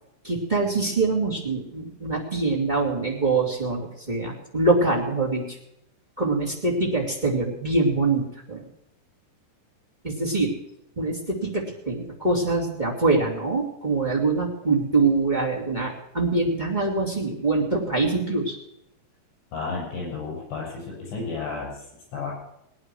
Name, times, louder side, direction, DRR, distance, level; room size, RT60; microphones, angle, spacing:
voice 1, 0.2-5.6 6.2-8.6 10.0-10.5 10.9-18.6, right 3 dB, 20° right, -1 dB, 1.3 m, -24 dB
voice 2, 19.5-22.3, left 4 dB, 70° left, -2 dB, 9.7 m, -32 dB
20.5 x 9.9 x 6.3 m, 0.84 s
omnidirectional pair, 5.5 m